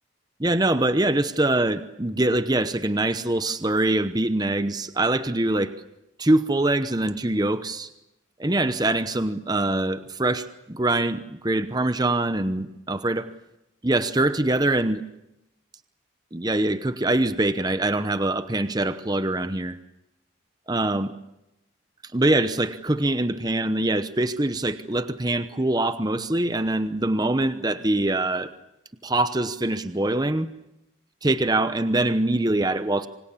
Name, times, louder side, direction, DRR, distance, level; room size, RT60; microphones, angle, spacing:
voice 1, 0.4-5.7 6.2-7.9 8.4-10.4 10.7-11.2 11.4-13.3 13.8-15.0 16.3-19.7 20.7-21.1 22.1-28.5 29.0-30.5 31.2-33.1, right 2 dB, 20° right, 11 dB, 0.9 m, -23 dB
27.0 x 25.0 x 7.3 m, 0.90 s
head